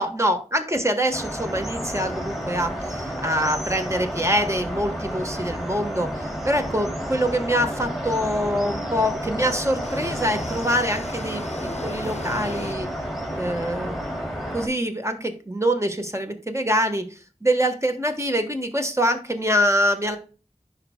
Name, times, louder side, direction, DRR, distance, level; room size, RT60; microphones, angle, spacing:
voice 1, 0.0-11.4 11.8-12.9 13.3-13.9 14.5-20.2, equal, 25° right, 5 dB, 1.3 m, -24 dB
sound 1, 1.1-14.7, equal, ahead, 2.7 m, -31 dB
sound 2, 9.8-12.7, left 3 dB, 60° left, 0.6 m, -37 dB
10.5 x 4.6 x 2.3 m, 0.35 s
wide cardioid pair, 40°, 12 cm